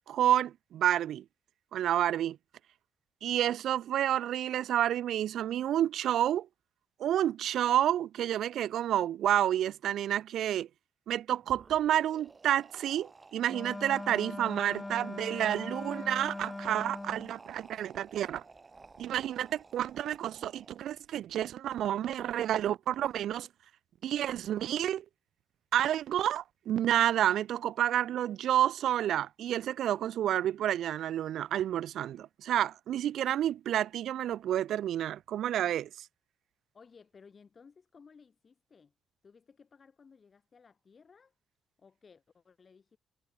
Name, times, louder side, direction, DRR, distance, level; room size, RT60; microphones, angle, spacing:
voice 1, 0.1-1.2 1.7-2.4 3.2-6.5 7.0-10.7 11.1-18.4 19.0-23.5 24.0-25.0 25.7-36.1, right 11 dB, 75° right, 0.5 m, -29 dB
sound 1, 11.4-21.1, right 4 dB, 30° right, 7.4 m, -56 dB
Wind instrument woodwind instrument, 13.5-17.4, left 2 dB, 15° left, 1.2 m, -40 dB
voice 2, 36.7-38.9 39.2-41.4 41.8-43.0, left 5 dB, 40° left, 4.6 m, -58 dB
cardioid pair, 90°, 0 cm